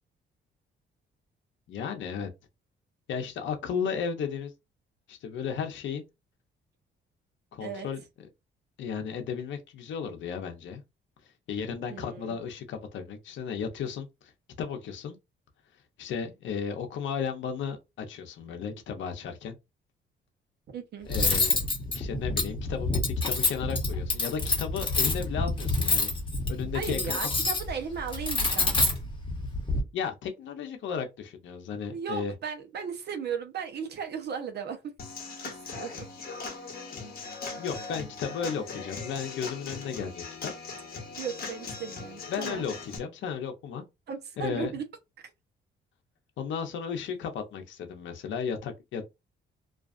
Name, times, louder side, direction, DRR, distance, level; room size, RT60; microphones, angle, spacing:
voice 1, 1.7-2.3 3.1-4.5 5.1-6.0 7.5-8.0 8.8-10.8 11.2-14.3 14.6-15.2 16.0-19.5 21.1-21.6 21.9-23.0 23.2-26.1 26.5-27.2 29.9-32.3 37.6-40.5 42.3-43.8 44.4-44.7 46.4-49.1, left 7 dB, 70° left, 0.7 m, -34 dB
voice 2, 11.9-12.3 20.7-21.1 26.7-28.9 31.9-34.8 35.7-36.1 41.2-42.7 44.1-44.8, right 7 dB, 55° right, 0.7 m, -36 dB
Cutlery silverware, 21.1-29.8, left 3 dB, 25° left, 1.0 m, -28 dB
Human voice / Acoustic guitar / Drum, 35.0-43.0, left 4 dB, 50° left, 1.0 m, -39 dB
2.5 x 2.3 x 2.4 m
cardioid pair, 90°, 20 cm